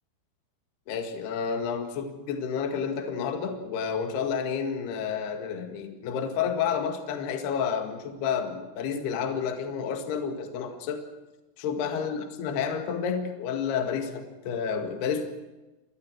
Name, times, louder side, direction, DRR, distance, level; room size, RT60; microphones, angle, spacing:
voice 1, 0.9-11.0 11.6-15.3, left 6 dB, 60° left, 5 dB, 3.6 m, -30 dB
29.0 x 22.0 x 6.3 m, 1.1 s
omnidirectional pair, 5.9 m